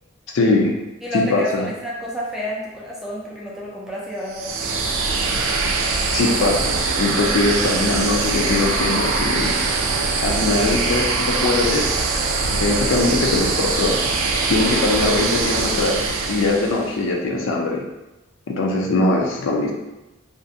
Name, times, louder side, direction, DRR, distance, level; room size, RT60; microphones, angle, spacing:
voice 1, 0.3-0.7 1.1-1.7 6.1-9.5 10.2-12.0 12.5-14.0 14.5-17.8 18.5-19.7, left 2 dB, 70° left, 0 dB, 0.4 m, -21 dB
voice 2, 1.0-4.8, left 1 dB, ahead, -5 dB, 0.4 m, -29 dB
sound 1, 4.3-17.0, right 3 dB, 80° right, 0.3 m, -22 dB
2.5 x 2.1 x 2.6 m, 0.99 s
head